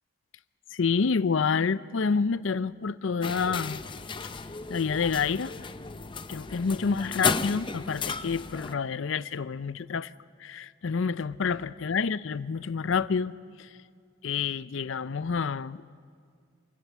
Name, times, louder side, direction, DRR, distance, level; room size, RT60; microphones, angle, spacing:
voice 1, 0.7-3.8 4.7-5.5 6.3-10.1 10.4-13.3 13.6-13.7 14.2-15.8, left 5 dB, 75° left, 0.5 m, -28 dB
sound 1, 3.2-8.7, left 5 dB, 25° left, 0.5 m, -34 dB
27.5 x 14.5 x 8.4 m
head